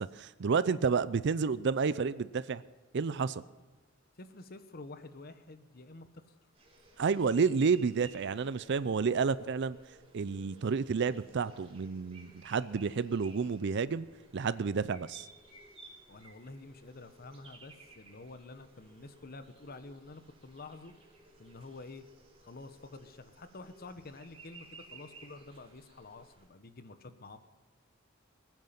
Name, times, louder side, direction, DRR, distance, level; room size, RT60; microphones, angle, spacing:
voice 1, 0.0-2.6 2.9-3.4 7.0-9.8 10.1-14.1 14.3-15.2, right 5 dB, 60° right, 16 dB, 0.5 m, -30 dB
voice 2, 4.2-6.3 16.1-20.9 21.4-22.0 22.4-27.4, left 3 dB, 50° left, 11 dB, 1.1 m, -49 dB
sound 1, 6.5-26.5, right 3 dB, 30° right, 3.5 m, -57 dB
21.0 x 9.3 x 5.8 m, 1.3 s
head